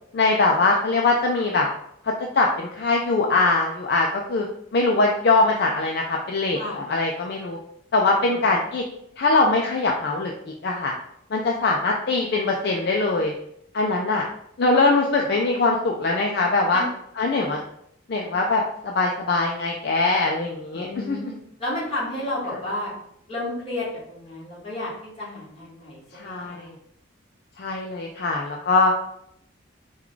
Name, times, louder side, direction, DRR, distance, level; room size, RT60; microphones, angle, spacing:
voice 1, 0.1-1.7 2.0-4.5 4.7-7.6 7.9-8.8 9.2-10.3 10.6-10.9 11.3-13.3 13.7-14.2 14.6-16.8 17.2-17.6 18.1-21.2 26.1-26.7 27.6-28.9, left 3 dB, 50° left, 0 dB, 0.4 m, -22 dB
voice 2, 6.5-6.9 8.3-8.4 16.7-16.8 17.3-17.6 20.7-22.9 23.3-26.7, left 1 dB, 30° left, -7 dB, 1.5 m, -32 dB
4.6 x 2.3 x 3.7 m, 0.74 s
head